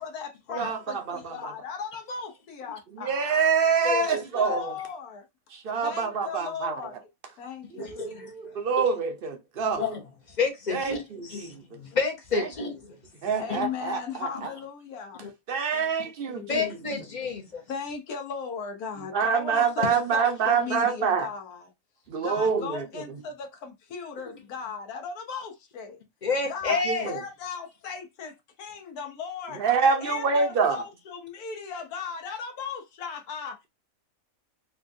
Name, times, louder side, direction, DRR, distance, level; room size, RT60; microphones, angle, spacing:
voice 1, 0.0-3.2 4.0-5.2 5.8-7.1 7.4-8.6 13.4-15.2 15.7-15.9 16.3-16.5 17.7-21.6 22.2-26.0 26.5-29.6 30.0-33.6, left 6 dB, 90° left, 1.3 m, -37 dB
voice 2, 0.6-1.5 2.9-4.7 5.5-6.7 7.9-9.9 10.7-11.6 12.3-12.5 13.2-14.5 15.5-16.8 19.1-21.3 22.1-23.0 26.7-27.2 29.5-30.8, right 5 dB, 55° right, 0.6 m, -26 dB
voice 3, 3.8-4.2 4.5-4.6 7.8-8.3 8.8-8.9 9.8-10.0 10.4-12.8 13.5-13.6 15.2-15.3 16.5-17.6 26.2-27.1, left 4 dB, 50° left, 0.5 m, -29 dB
4.3 x 2.2 x 2.5 m
omnidirectional pair, 1.5 m